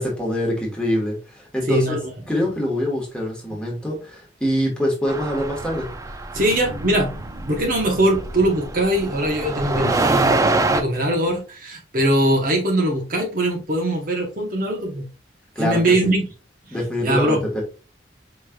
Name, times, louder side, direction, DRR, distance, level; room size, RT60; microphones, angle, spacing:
voice 1, 0.0-2.0 2.3-5.9 15.5-16.1 16.7-17.6, equal, 5° left, 1.2 m, -24 dB
voice 2, 1.7-2.1 6.3-15.1 15.6-16.3 16.7-16.8 17.0-17.5, right 1 dB, 50° right, 0.8 m, -21 dB
sound 1, 5.1-10.8, right 3 dB, 15° right, 0.3 m, -25 dB
4.8 x 3.1 x 2.2 m
head